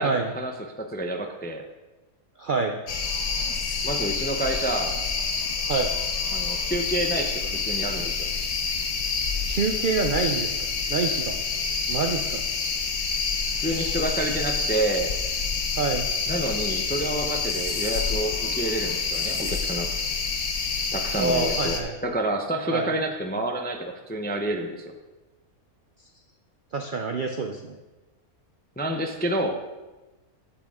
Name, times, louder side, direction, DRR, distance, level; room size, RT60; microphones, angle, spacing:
voice 1, 0.0-1.6 3.8-4.9 6.3-8.3 13.6-15.1 16.3-19.9 20.9-24.9 28.8-29.6, right 1 dB, 15° left, 3 dB, 0.3 m, -29 dB
voice 2, 2.4-2.8 5.7-5.9 9.4-10.6 10.9-11.4 11.9-12.4 15.7-16.1 21.2-22.0 22.7-22.9 26.7-27.8, right 4 dB, 60° right, 4 dB, 0.5 m, -26 dB
sound 1, 2.9-21.8, left 5 dB, 75° left, 1.5 m, -28 dB
8.8 x 8.7 x 3.6 m, 1.1 s
omnidirectional pair, 1.5 m